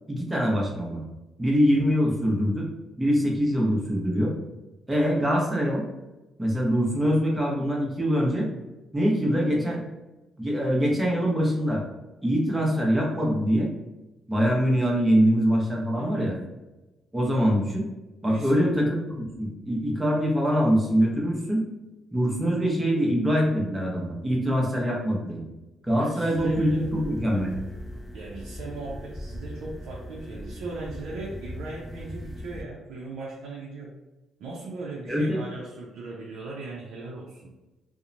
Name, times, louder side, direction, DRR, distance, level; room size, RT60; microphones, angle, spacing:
voice 1, 0.1-1.0 1.4-2.7 3.0-4.3 4.9-5.8 6.4-8.5 8.9-9.8 10.4-11.8 12.2-13.7 14.3-16.3 17.1-17.8 18.2-21.6 22.1-25.4 25.8-27.5 35.1-35.4, equal, 15° right, -2 dB, 0.8 m, -24 dB
voice 2, 15.9-16.4 18.2-18.7 25.9-26.9 28.1-33.9 34.4-37.5, right 3 dB, 85° right, -3 dB, 0.5 m, -38 dB
sound 1, 26.3-32.6, equal, 25° left, 0.4 m, -39 dB
2.8 x 2.1 x 2.5 m, 1.0 s
cardioid pair, 90°, 0 cm